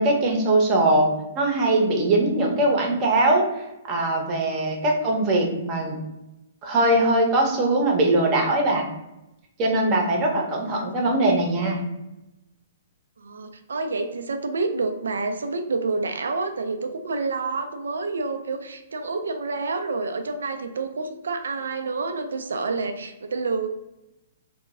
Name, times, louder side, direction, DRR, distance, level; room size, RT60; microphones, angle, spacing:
voice 1, 0.0-3.4 3.9-6.0 6.6-8.9 9.6-11.8, right 2 dB, 30° right, 1 dB, 0.7 m, -21 dB
voice 2, 13.2-23.7, right 3 dB, 85° right, 7 dB, 0.3 m, -28 dB
2.2 x 2.0 x 3.5 m, 0.93 s
hypercardioid pair, 140°, 0 cm